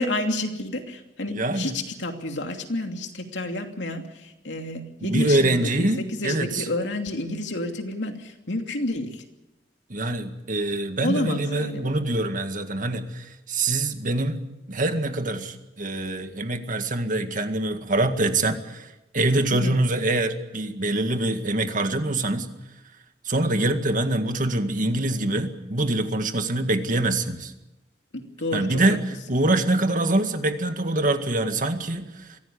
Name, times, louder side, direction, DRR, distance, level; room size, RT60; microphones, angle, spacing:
voice 1, 0.0-9.2 11.0-12.0 19.5-19.8 28.1-29.0, left 1 dB, 85° left, 4 dB, 2.8 m, -30 dB
voice 2, 1.3-1.8 5.0-6.6 9.9-14.4 14.7-18.9 19.1-22.5 23.3-27.5 28.5-32.3, right 2 dB, 50° right, 7 dB, 2.0 m, -24 dB
23.5 x 16.5 x 8.6 m, 0.97 s
head